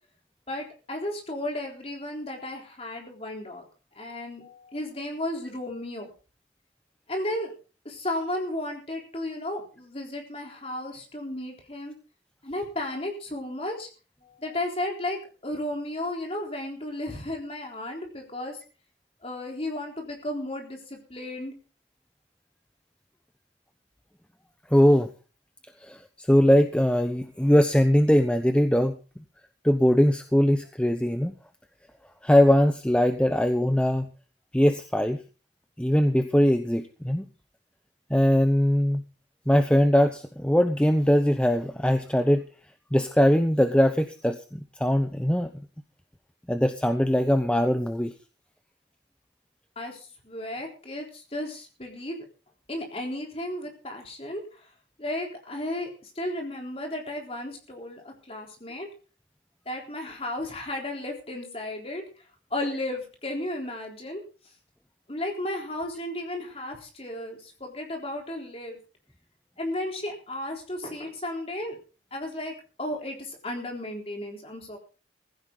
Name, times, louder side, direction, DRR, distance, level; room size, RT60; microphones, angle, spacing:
voice 1, 0.5-3.6 4.0-6.1 7.1-7.5 7.8-11.9 12.4-13.9 14.2-18.6 19.2-21.5 49.8-52.2 52.7-54.4 55.0-58.9 59.7-62.1 62.5-64.2 65.1-68.8 69.6-71.8 72.1-74.8, left 1 dB, 35° left, 2 dB, 3.9 m, -34 dB
voice 2, 24.7-25.1 25.8-29.0 29.6-31.3 32.2-34.1 34.5-35.2 35.8-37.2 38.1-39.0 39.5-42.4 42.9-45.5 46.5-48.1, equal, 5° left, 8 dB, 0.8 m, -21 dB
16.0 x 15.5 x 3.9 m, 0.36 s
head